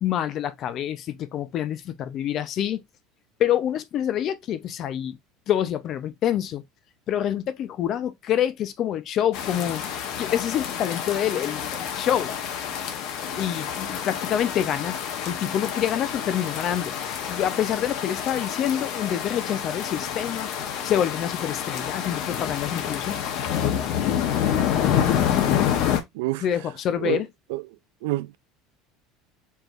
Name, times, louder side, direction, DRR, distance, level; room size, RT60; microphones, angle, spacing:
voice 1, 0.0-2.8 3.4-5.2 5.5-6.6 7.1-9.8 10.2-12.3 13.4-15.0 15.3-17.0 17.3-20.5 20.8-23.2 26.4-27.3, left 10 dB, 40° left, 0.6 m, -26 dB
sound 1, 9.3-26.0, left 9 dB, 60° left, 1.0 m, -28 dB
voice 2, 26.1-26.4 27.0-27.2 27.5-27.6 28.0-28.4, right 19 dB, 85° right, 0.3 m, -27 dB
4.6 x 3.3 x 2.5 m
cardioid pair, 145°, 0 cm